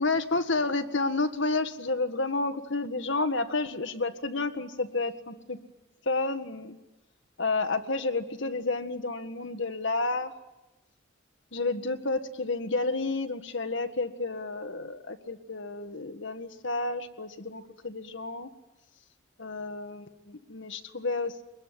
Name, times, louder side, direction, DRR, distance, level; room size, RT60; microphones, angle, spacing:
voice 1, 0.0-5.6 6.1-6.8 7.4-10.3 11.5-18.5 19.4-21.3, left 3 dB, 65° left, 8 dB, 1.7 m, -30 dB
24.0 x 21.5 x 10.0 m, 1.0 s
head